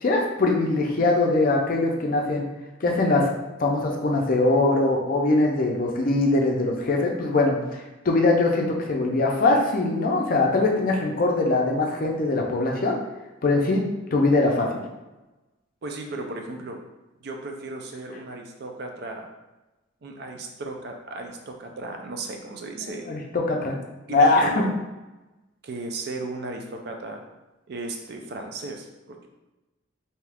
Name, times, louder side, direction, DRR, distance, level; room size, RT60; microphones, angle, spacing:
voice 1, 0.0-2.4 2.8-3.3 3.6-7.6 8.1-13.0 13.4-13.8 14.1-14.7 23.1-23.8 24.1-24.5, left 2 dB, 50° left, 0 dB, 0.5 m, -22 dB
voice 2, 15.8-16.8 17.2-19.3 20.0-23.1 24.1-24.8 25.6-27.2 27.7-29.3, right 2 dB, 55° right, 3 dB, 0.4 m, -35 dB
2.7 x 2.3 x 3.4 m, 1.1 s
head